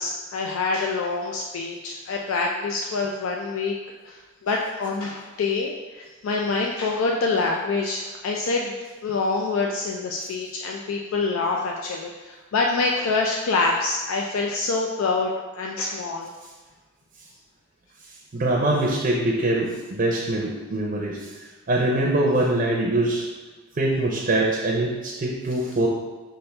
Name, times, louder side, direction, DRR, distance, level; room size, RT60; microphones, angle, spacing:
voice 1, 0.0-3.7 4.0-8.7 9.0-16.3, left 3 dB, 85° left, 0 dB, 0.4 m, -26 dB
voice 2, 18.3-21.2 21.7-23.3 23.8-25.9, right 1 dB, 45° right, -2 dB, 0.5 m, -23 dB
5.4 x 2.6 x 3.3 m, 1.3 s
head